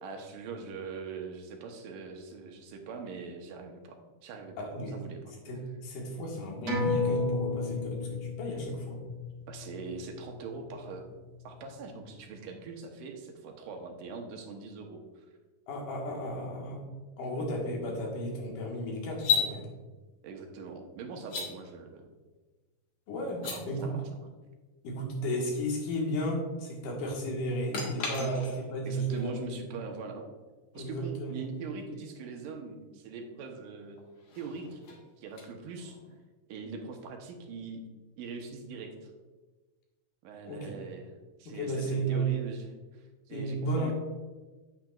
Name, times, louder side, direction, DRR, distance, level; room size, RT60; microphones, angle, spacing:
voice 1, 0.0-5.2 9.5-11.0 11.4-15.3 20.2-22.1 23.4-24.0 28.2-28.3 28.9-30.2 30.7-34.0 34.4-34.8 35.2-36.0 36.5-37.8 38.2-39.1 40.2-41.1 41.4-43.9, right 4 dB, 85° right, 3 dB, 2.6 m, -42 dB
voice 2, 4.6-5.0 5.5-9.0 15.7-16.8 17.2-19.7 23.1-23.9 24.8-29.6 30.8-31.5 40.4-40.8 41.5-42.3 43.3-43.9, right 1 dB, 75° left, -1 dB, 3.1 m, -33 dB
sound 1, 6.7-11.6 12.0-12.1, left 3 dB, 50° right, 3.2 m, -34 dB
sound 2, 19.1-19.5 21.2-21.5 23.3-23.6 27.7-28.8 31.9-32.0 34.0-36.1, left 6 dB, 50° left, 1.9 m, -33 dB
8.9 x 8.8 x 2.4 m, 1.3 s
omnidirectional pair, 3.7 m